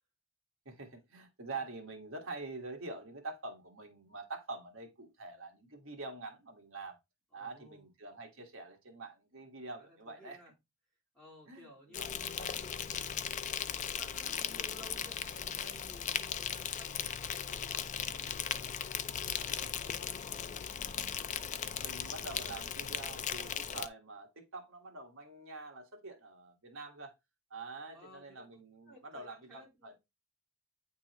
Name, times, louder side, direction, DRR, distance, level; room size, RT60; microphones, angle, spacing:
voice 1, 0.6-7.0 7.3-10.4 11.4-12.1 19.5-19.7 21.5-27.1 27.5-30.0, right 3 dB, 65° right, 1.5 m, -46 dB
voice 2, 7.3-7.9 9.8-10.5 11.1-13.1 13.5-20.6 27.9-30.0, equal, 5° left, 3.4 m, -57 dB
Insect, 11.9-23.9, left 8 dB, 35° left, 0.4 m, -38 dB
9.2 x 3.6 x 3.0 m
head